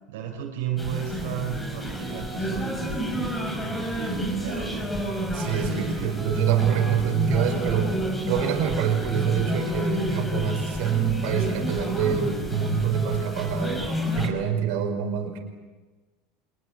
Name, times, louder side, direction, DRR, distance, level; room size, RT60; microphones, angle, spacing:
voice 1, 0.1-5.0 5.6-6.3, right 9 dB, 90° right, 0 dB, 5.2 m, -35 dB
sound 1, 0.8-14.3, equal, 10° left, 6.0 m, -29 dB
voice 2, 5.3-8.0 8.3-13.8 14.1-15.4, right 9 dB, 70° right, 3 dB, 5.4 m, -26 dB
26.5 x 21.0 x 8.0 m, 1.3 s
supercardioid pair, 125°, 0 cm